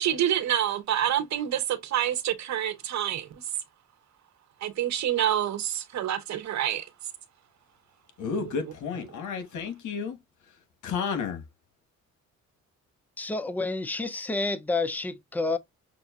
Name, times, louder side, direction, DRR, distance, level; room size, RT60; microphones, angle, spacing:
voice 1, 0.0-3.3 4.6-6.9 8.3-8.7, right 11 dB, 65° right, 0.9 m, -27 dB
voice 2, 8.2-10.2 10.8-11.4, left 6 dB, 75° left, 1.3 m, -31 dB
voice 3, 13.2-15.6, left 3 dB, 5° left, 0.5 m, -29 dB
6.0 x 2.5 x 2.3 m
cardioid pair, 90°, 30 cm